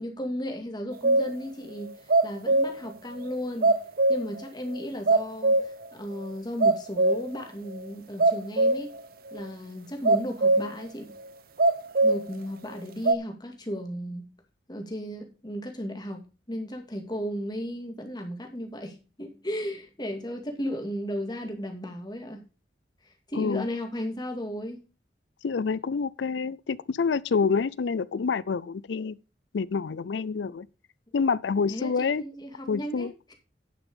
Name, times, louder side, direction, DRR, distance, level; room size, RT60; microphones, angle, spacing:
voice 1, 0.0-3.8 4.1-5.6 5.9-8.9 9.3-11.2 12.0-14.3 14.7-16.2 16.5-22.4 23.3-24.8 31.7-33.3, equal, 25° left, 2.1 m, -35 dB
sound 1, 1.0-1.4 1.9-2.9 3.2-3.3 3.6-4.4 4.8-4.9 5.1-5.9 6.2-6.3 6.6-7.4 7.7-7.9 8.2-9.0 9.3-9.4 10.0-10.8 11.6-12.2 13.1-13.2, right 2 dB, 55° right, 0.7 m, -22 dB
voice 2, 23.4-23.7 25.4-29.2 29.5-30.7 31.1-32.2 32.7-33.1, left 5 dB, 90° left, 0.5 m, -27 dB
10.0 x 6.0 x 5.4 m
head